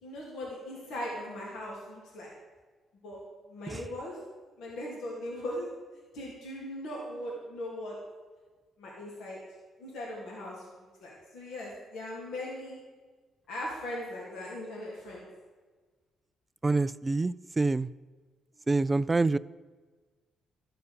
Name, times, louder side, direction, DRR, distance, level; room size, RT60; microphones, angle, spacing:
voice 1, 0.0-2.3 3.0-3.2 3.5-4.2 4.6-5.7 6.1-8.0 8.8-9.4 9.8-10.6 11.0-12.8 13.5-15.3, left 1 dB, 80° left, -4 dB, 2.8 m, -39 dB
voice 2, 16.6-17.9 18.7-19.4, right 3 dB, 20° right, 17 dB, 0.3 m, -26 dB
12.5 x 6.9 x 6.8 m, 1.4 s
cardioid pair, 90°, 0 cm